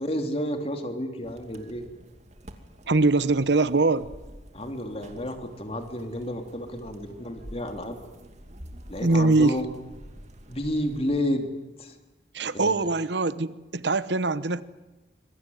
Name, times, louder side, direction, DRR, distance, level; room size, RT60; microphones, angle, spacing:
voice 1, 0.0-1.9 4.5-8.0 8.9-9.7 10.5-11.5 11.8-11.9 12.5-12.9, equal, 35° left, 6 dB, 3.1 m, -31 dB
sound 1, 1.2-11.2, equal, 40° right, 2.7 m, -48 dB
voice 2, 2.9-4.1 9.0-9.5 12.3-14.6, right 3 dB, 70° right, 15 dB, 1.0 m, -22 dB
26.5 x 22.5 x 9.5 m, 1.1 s
head